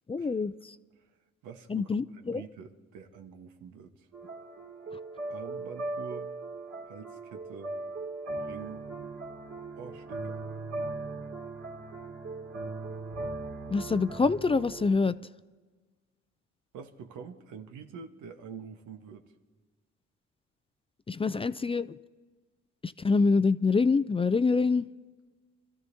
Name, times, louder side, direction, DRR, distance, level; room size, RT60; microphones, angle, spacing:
voice 1, 0.1-0.8 1.7-2.4 13.7-15.2 21.1-22.0 22.8-24.9, left 4 dB, 20° left, 0.4 m, -26 dB
voice 2, 1.4-1.9 2.2-4.1 5.3-6.3 6.9-7.8 8.4-8.8 9.8-10.4 16.7-19.2, right 7 dB, 90° right, 1.4 m, -45 dB
sound 1, 4.1-14.9, right 2 dB, 55° right, 2.5 m, -39 dB
27.5 x 13.5 x 2.8 m
cardioid pair, 90°, 30 cm